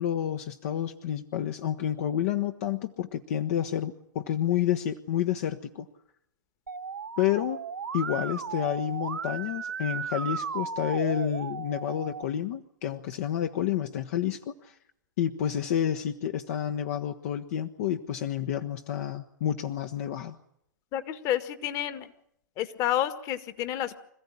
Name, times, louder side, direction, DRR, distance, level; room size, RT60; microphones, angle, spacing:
voice 1, 0.0-5.9 7.2-7.6 7.9-14.7 15.2-20.4, left 10 dB, 50° left, 6 dB, 1.3 m, -29 dB
Musical instrument, 6.7-12.2, right 6 dB, 75° right, 0.9 m, -35 dB
voice 2, 20.9-22.1 22.6-24.0, left 12 dB, 30° left, 10 dB, 1.8 m, -30 dB
26.5 x 15.5 x 10.0 m, 0.77 s
figure-of-eight pair, 115°, 10 cm